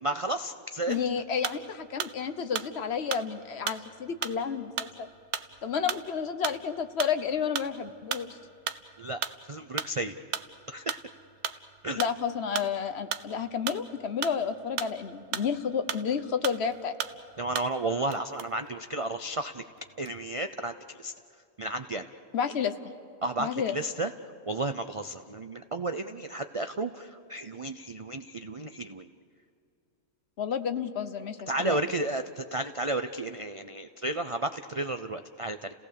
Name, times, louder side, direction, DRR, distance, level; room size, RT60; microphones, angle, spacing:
voice 1, 0.0-1.0 9.0-9.2 9.5-10.2 10.7-11.0 11.8-12.0 17.4-19.6 20.0-21.1 21.6-22.1 23.2-24.1 24.5-29.1 31.5-35.8, right 2 dB, 55° right, 8 dB, 0.3 m, -32 dB
voice 2, 0.9-5.1 5.6-8.4 12.0-16.9 22.3-22.9 23.4-23.8 30.4-31.8, left 7 dB, 50° left, 9 dB, 1.1 m, -31 dB
sound 1, 0.9-2.2 2.6-16.2 16.4-17.9 18.1-19.4 19.8-20.4, right 9 dB, 85° right, 1.3 m, -36 dB
30.0 x 17.5 x 6.8 m, 2.5 s
omnidirectional pair, 1.5 m